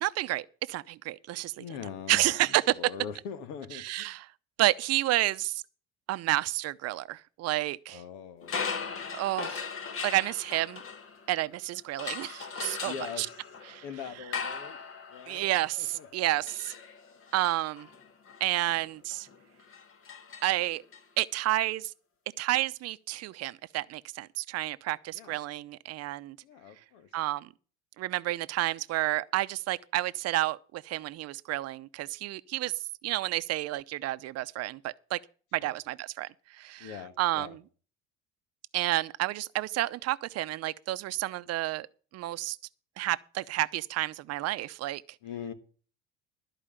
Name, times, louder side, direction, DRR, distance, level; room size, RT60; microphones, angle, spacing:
voice 1, 0.0-1.6 2.1-2.8 3.8-4.3 4.6-5.6 6.1-8.0 9.1-9.7 10.0-10.8 11.3-13.3 13.7-13.8 15.3-16.7 17.3-17.9 18.4-19.3 20.4-20.8 21.2-21.9 22.4-26.4 27.1-27.5 28.0-32.7 33.0-35.2 35.5-36.9 37.2-37.6 38.7-41.9 42.1-42.6 43.0-45.0, right 16 dB, 50° right, 0.7 m, -30 dB
voice 2, 1.6-4.2 7.9-9.1 12.8-13.4 13.8-14.8 15.1-16.5 25.1-25.4 26.4-27.1 35.6-35.8 36.8-37.6 45.2-45.5, left 7 dB, 75° left, 1.8 m, -43 dB
sound 1, 8.4-11.5 12.0-21.0, left 5 dB, 40° left, 1.9 m, -39 dB
13.0 x 4.9 x 8.9 m
supercardioid pair, 100°, 32 cm